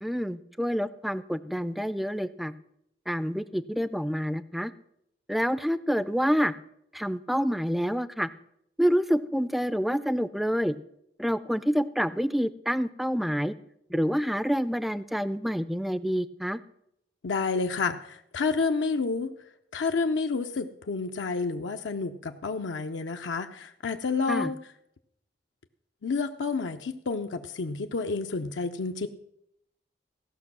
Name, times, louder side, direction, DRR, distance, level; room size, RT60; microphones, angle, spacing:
voice 1, 0.0-2.5 3.1-4.7 5.3-6.5 6.9-8.3 8.8-10.7 11.2-13.5 13.9-16.6 24.3-24.5, equal, ahead, 15 dB, 0.3 m, -27 dB
voice 2, 17.2-19.3 19.7-24.6 26.0-29.1, left 4 dB, 85° left, 6 dB, 0.5 m, -29 dB
15.5 x 6.0 x 6.0 m, 0.77 s
head